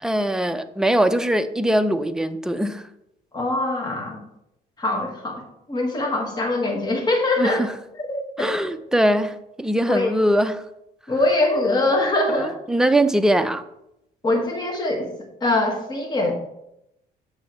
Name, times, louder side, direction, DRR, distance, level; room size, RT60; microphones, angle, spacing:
voice 1, 0.0-2.8 7.4-7.7 8.4-10.6 12.3-13.6, right 1 dB, 5° right, 0.5 m, -21 dB
voice 2, 3.3-4.2 4.8-7.6 8.0-8.5 9.9-10.2 11.1-12.6 14.2-15.1 15.4-16.3, left 2 dB, 25° left, 1.6 m, -23 dB
8.3 x 6.7 x 3.1 m
cardioid pair, 110°, 17 cm